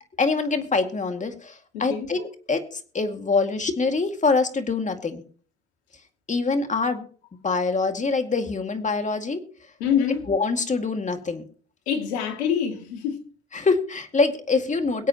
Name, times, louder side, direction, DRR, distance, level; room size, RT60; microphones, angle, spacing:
voice 1, 0.2-5.2 6.3-7.0 7.4-9.4 10.3-11.4 13.5-15.1, left 4 dB, 25° left, 2.2 m, -24 dB
voice 2, 1.7-2.1 9.8-10.3 11.9-13.2, left 8 dB, 85° left, 2.5 m, -25 dB
22.5 x 8.3 x 3.0 m
hypercardioid pair, 80°, 32 cm